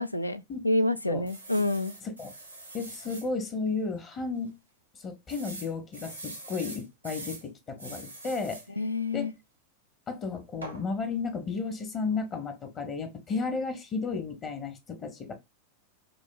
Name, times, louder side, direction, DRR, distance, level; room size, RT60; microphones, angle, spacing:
voice 1, 0.0-1.9 8.8-9.3, left 2 dB, 85° left, 0.3 m, -28 dB
sound 1, 1.3-3.3 3.8-3.9 4.2-4.3 5.3-7.4 7.8-8.7 10.6-10.8, right 2 dB, 90° right, 1.0 m, -43 dB
voice 2, 2.7-4.6 5.0-8.6 9.1-9.3 10.1-15.3, left 4 dB, 30° left, 0.7 m, -33 dB
4.9 x 2.0 x 2.3 m
figure-of-eight pair, 90°, 0 cm